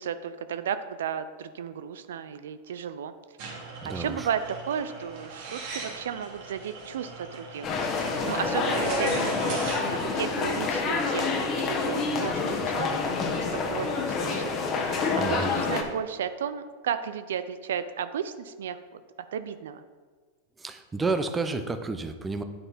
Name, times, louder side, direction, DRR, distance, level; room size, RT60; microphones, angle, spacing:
voice 1, 0.0-3.1 3.9-7.7 8.0-14.5 14.8-19.0 19.3-19.8, right 8 dB, 75° right, 11 dB, 0.4 m, -34 dB
sound 1, 3.4-10.6, right 3 dB, 60° right, 2.4 m, -38 dB
voice 2, 3.8-4.3 15.2-15.5 20.6-22.4, right 3 dB, 15° right, 9 dB, 0.6 m, -30 dB
sound 2, 7.6-15.8, left 4 dB, 35° left, 1.1 m, -27 dB
9.3 x 5.5 x 4.1 m, 1.5 s
hypercardioid pair, 100°, 0 cm